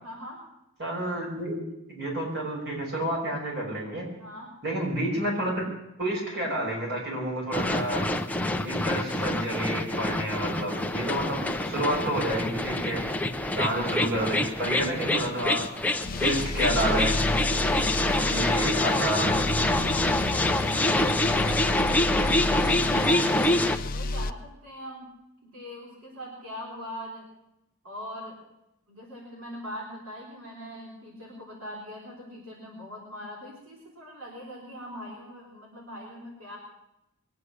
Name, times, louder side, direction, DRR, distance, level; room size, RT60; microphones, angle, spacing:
voice 1, 0.0-0.4 4.2-4.5 13.5-13.9 17.6-21.8 22.1-25.1 25.4-27.3 27.8-28.4 28.9-36.6, equal, 80° right, -2 dB, 4.1 m, -42 dB
voice 2, 0.8-1.6 1.9-4.1 4.6-5.6 6.0-8.1 8.6-13.0 13.5-15.7 16.2-17.2 18.3-19.3, right 1 dB, 55° right, -2 dB, 5.8 m, -29 dB
sound 1, 7.5-23.8, left 1 dB, 5° left, 0.7 m, -26 dB
sound 2, 16.1-24.3, left 2 dB, 40° left, 0.6 m, -32 dB
22.0 x 9.6 x 6.6 m, 0.87 s
head